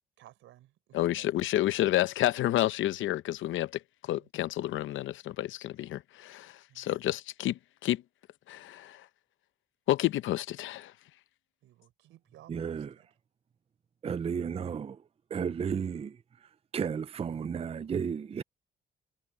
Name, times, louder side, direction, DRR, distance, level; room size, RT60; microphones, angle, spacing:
voice 1, 0.2-1.4 4.1-4.3 6.7-6.9 11.6-13.1, right 14 dB, 90° right, 4.1 m, -57 dB
voice 2, 0.9-3.7 4.0-8.0 8.5-9.0 9.9-10.9, left 14 dB, 80° left, 0.8 m, -30 dB
voice 3, 12.5-12.9 14.0-15.0 15.3-18.4, right 7 dB, 30° right, 0.5 m, -33 dB
cardioid pair, 90°, 20 cm